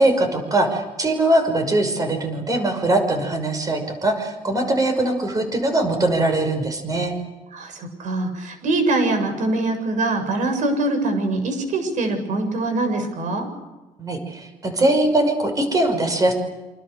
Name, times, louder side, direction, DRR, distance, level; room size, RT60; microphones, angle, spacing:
voice 1, 0.0-7.1 14.0-16.3, right 1 dB, 25° right, 6 dB, 5.8 m, -21 dB
voice 2, 7.5-13.5, right 2 dB, 60° right, 6 dB, 7.4 m, -23 dB
28.0 x 26.5 x 6.8 m, 1.1 s
cardioid pair, 155°, 15 cm